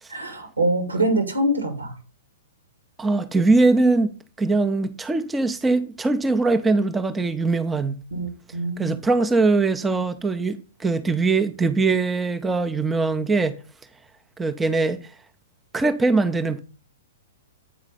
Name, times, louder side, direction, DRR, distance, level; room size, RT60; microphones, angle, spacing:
voice 1, 0.1-1.9 8.1-9.0, right 1 dB, 80° right, 2.0 m, -24 dB
voice 2, 3.0-8.0 8.8-13.5 14.4-15.1 15.7-16.6, right 3 dB, 10° right, 0.5 m, -21 dB
8.7 x 4.8 x 5.2 m
figure-of-eight pair, 110°, 0 cm